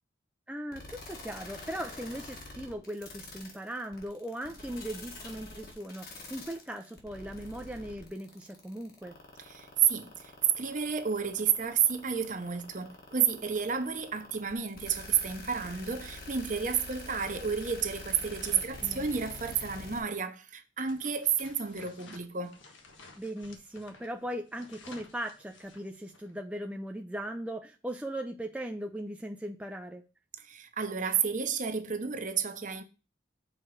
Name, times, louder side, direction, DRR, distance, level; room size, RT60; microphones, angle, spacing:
voice 1, 0.5-9.2 18.5-19.1 23.2-30.0, right 1 dB, 5° right, 0.5 m, -39 dB
sound 1, 0.7-20.0, left 2 dB, 50° left, 1.9 m, -46 dB
voice 2, 9.4-22.6 30.4-32.8, right 7 dB, 40° right, 0.8 m, -31 dB
sound 2, 20.8-26.3, left 3 dB, 85° left, 1.4 m, -54 dB
6.5 x 4.5 x 6.0 m
head